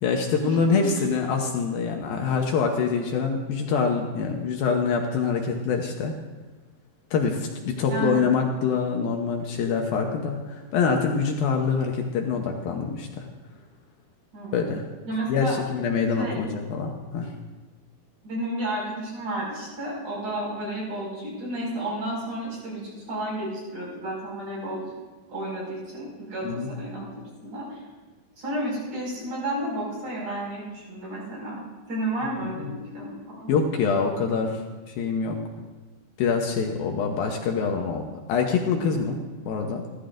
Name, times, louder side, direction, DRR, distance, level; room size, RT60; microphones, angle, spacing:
voice 1, 0.0-6.1 7.1-13.3 14.5-14.8 15.3-17.3 26.4-26.7 32.4-32.7 33.5-34.6 34.9-35.4 36.2-39.2 39.5-39.8, left 5 dB, 70° left, 2 dB, 2.6 m, -25 dB
voice 2, 7.9-8.3 14.3-14.7 15.1-15.6 16.2-16.4 18.2-24.9 25.3-27.0 27.4-27.8 28.4-31.6 31.9-33.5, right 1 dB, 50° right, -5 dB, 7.0 m, -32 dB
29.5 x 13.5 x 2.6 m, 1.3 s
omnidirectional pair, 4.7 m